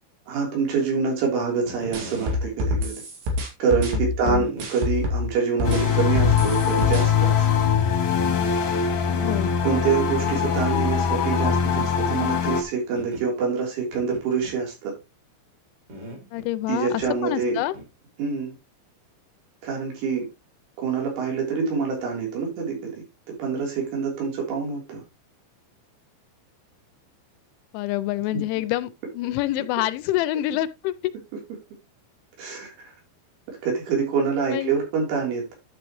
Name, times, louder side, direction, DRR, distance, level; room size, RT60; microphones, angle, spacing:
voice 1, 0.3-3.0 3.6-7.5 9.6-14.9 16.7-17.6 18.2-18.5 19.6-20.3 20.8-23.0 23.4-25.0 28.3-28.4 32.4-32.9 33.5-35.5, right 5 dB, 85° right, 6.0 m, -26 dB
sound 1, 1.7-2.4 3.3-3.4 4.4-4.7 5.9-6.0 6.2-6.9 7.2-7.3 8.9-9.5 9.8-10.2 10.4-10.5 10.9-11.0 11.5-11.9 13.0-13.3 13.9-14.6 15.9-16.5 17.7-17.9, equal, 35° right, 3.0 m, -39 dB
sound 2, 1.9-5.3 5.6-7.0, left 2 dB, 65° right, 4.4 m, -26 dB
sound 3, 5.6-12.6, left 7 dB, 65° left, 1.7 m, -22 dB
voice 2, 9.2-9.5 16.3-17.7 27.7-31.1 34.5-34.8, left 15 dB, 85° left, 2.9 m, -27 dB
11.5 x 6.5 x 3.0 m
omnidirectional pair, 5.3 m